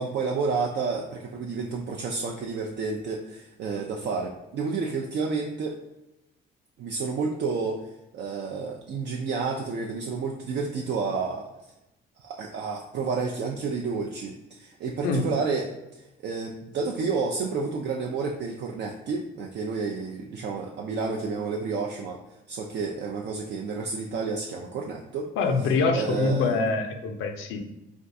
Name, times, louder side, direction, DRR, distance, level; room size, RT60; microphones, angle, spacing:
voice 1, 0.0-5.8 6.8-11.5 12.2-22.2 22.5-25.3 25.9-26.6, right 4 dB, 60° right, 0 dB, 0.4 m, -30 dB
voice 2, 25.4-27.6, left 4 dB, 85° left, 4 dB, 0.5 m, -25 dB
3.4 x 2.3 x 2.6 m, 0.94 s
cardioid pair, 90°, 20 cm